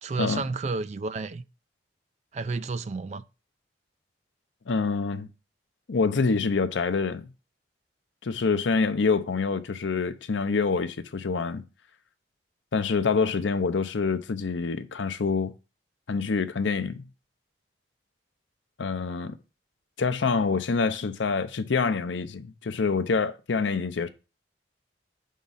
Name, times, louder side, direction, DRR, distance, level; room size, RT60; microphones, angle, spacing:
voice 1, 0.0-1.4 2.3-3.2, right 3 dB, 40° right, 0.3 m, -31 dB
voice 2, 4.7-5.3 5.9-7.3 8.2-11.6 12.7-15.5 16.1-17.1 18.8-19.4 20.0-24.1, left 4 dB, 85° left, 0.6 m, -26 dB
5.2 x 3.7 x 5.5 m
head